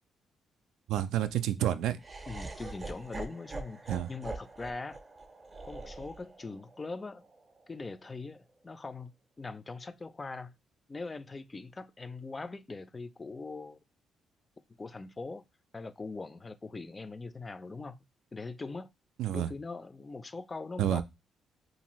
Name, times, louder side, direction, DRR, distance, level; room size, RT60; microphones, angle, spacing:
voice 1, 0.9-2.0 3.9-4.1 19.2-19.5 20.8-21.0, right 11 dB, 85° right, 0.3 m, -29 dB
Laughter, 2.0-8.1, right 3 dB, 30° right, 0.5 m, -44 dB
voice 2, 2.3-5.0 5.7-7.3 7.7-10.5 10.9-13.8 14.8-15.4 15.7-18.0 18.3-18.9 19.3-21.0, left 3 dB, 25° left, 0.3 m, -41 dB
2.7 x 2.5 x 3.0 m
cardioid pair, 90°, 0 cm